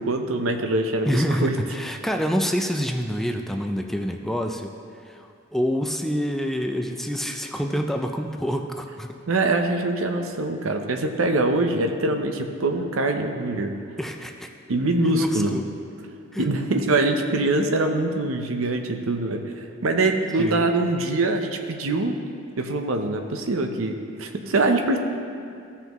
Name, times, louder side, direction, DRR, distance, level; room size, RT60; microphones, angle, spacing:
voice 1, 0.0-1.5 9.3-13.7 14.7-15.6 16.4-22.2 22.6-25.0, right 2 dB, 90° right, 5 dB, 0.7 m, -24 dB
voice 2, 1.1-4.8 5.0-9.2 14.0-14.5 15.0-15.7 16.3-16.5 20.4-20.6, equal, ahead, 4 dB, 0.4 m, -27 dB
15.0 x 5.7 x 3.0 m, 2.4 s
head